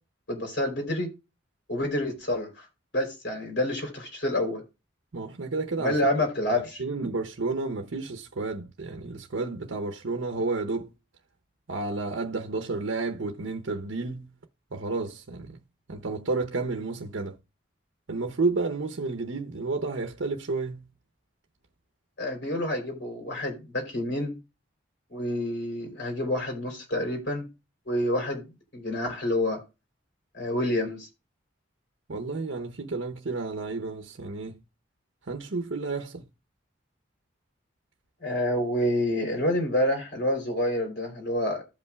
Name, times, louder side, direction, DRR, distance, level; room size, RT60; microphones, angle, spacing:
voice 1, 0.3-1.1 1.7-2.7 2.9-4.6 5.8-6.8 22.2-24.4 25.1-27.5 27.9-28.5 28.7-29.6 30.3-31.1 38.2-41.6, left 1 dB, 60° left, 3.3 m, -28 dB
voice 2, 5.1-6.3 6.5-10.9 11.7-14.3 14.7-15.6 15.9-17.4 18.1-20.9 32.1-34.6 35.3-36.2, right 3 dB, 80° right, 0.8 m, -31 dB
15.0 x 5.5 x 2.3 m
head